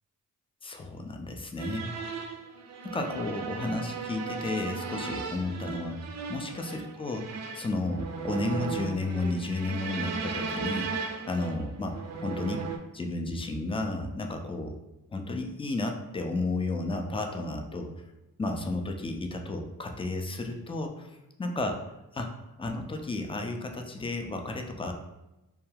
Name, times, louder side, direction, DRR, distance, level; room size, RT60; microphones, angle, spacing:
voice 1, 0.6-1.9 2.8-12.0 12.2-12.6 12.9-14.7 15.1-17.9 18.4-21.1 21.4-21.7 22.1-22.3 22.6-24.9, left 2 dB, 15° left, 3 dB, 0.4 m, -32 dB
sound 1, 1.6-12.8, right 5 dB, 45° right, 0.4 m, -36 dB
2.3 x 2.2 x 3.2 m, 0.99 s
supercardioid pair, 40°, 37 cm